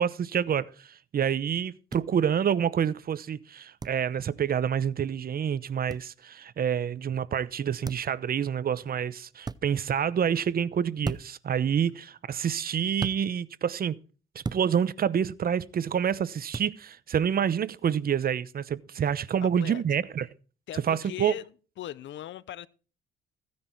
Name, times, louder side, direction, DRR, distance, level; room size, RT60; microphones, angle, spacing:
voice 1, 0.0-14.0 14.3-20.3 20.8-21.3, right 8 dB, 50° right, 0.9 m, -28 dB
sound 1, 1.9-2.1 3.8-4.0 5.9-6.1 7.8-8.2 9.4-9.6 11.0-11.4 13.0-13.2 14.4-14.7 16.5-16.7, right 4 dB, 20° right, 0.6 m, -34 dB
voice 2, 19.4-19.8 20.7-21.4 21.8-22.7, left 12 dB, 70° left, 0.8 m, -39 dB
15.5 x 9.7 x 4.5 m
cardioid pair, 90°, 20 cm